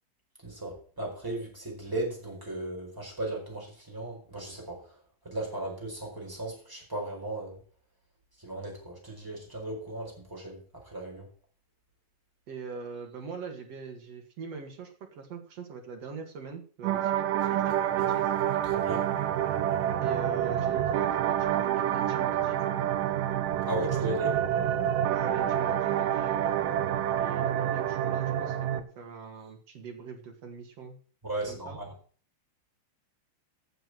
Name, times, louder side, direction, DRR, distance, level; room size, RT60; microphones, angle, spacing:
voice 1, 0.4-4.8 5.2-7.6 8.4-11.3 18.7-19.1 23.7-24.3 31.2-31.9, right 1 dB, 5° right, -1 dB, 3.9 m, -36 dB
voice 2, 12.5-18.3 20.0-22.9 23.9-24.4 25.1-31.0 31.5-31.8, right 5 dB, 45° right, 3 dB, 2.2 m, -42 dB
sound 1, 16.8-28.8, right 10 dB, 85° right, 1.9 m, -28 dB
9.2 x 7.0 x 7.7 m, 0.42 s
omnidirectional pair, 5.3 m